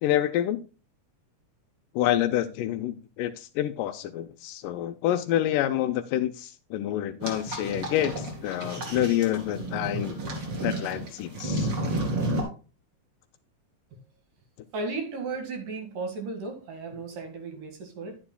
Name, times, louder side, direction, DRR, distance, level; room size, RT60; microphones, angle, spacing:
voice 1, 0.0-0.6 2.0-10.2 10.6-11.7, left 12 dB, 90° left, 2.2 m, -27 dB
sound 1, 7.2-12.4, right 1 dB, 40° right, 3.0 m, -31 dB
voice 2, 14.7-18.2, right 3 dB, 80° right, 3.5 m, -35 dB
10.5 x 10.0 x 2.2 m
omnidirectional pair, 3.7 m